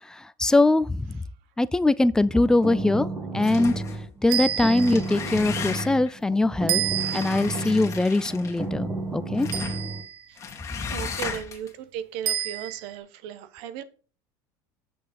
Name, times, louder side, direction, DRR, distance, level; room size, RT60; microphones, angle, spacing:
voice 1, 0.1-1.2 1.6-3.1 3.3-3.7 4.2-6.8 7.1-9.5, left 2 dB, 5° left, 0.4 m, -22 dB
sound 1, 2.2-10.0, right 2 dB, 25° right, 2.0 m, -32 dB
sound 2, 3.4-4.0 4.6-6.1 6.9-8.7 9.4-9.8 10.4-11.7, left 6 dB, 30° left, 2.0 m, -36 dB
sound 3, 4.3-5.2 6.7-7.5 9.5-10.2 12.3-12.9, right 11 dB, 85° right, 1.4 m, -29 dB
voice 2, 10.9-13.8, right 10 dB, 70° right, 1.1 m, -36 dB
7.7 x 6.3 x 5.2 m
cardioid pair, 140°, 10 cm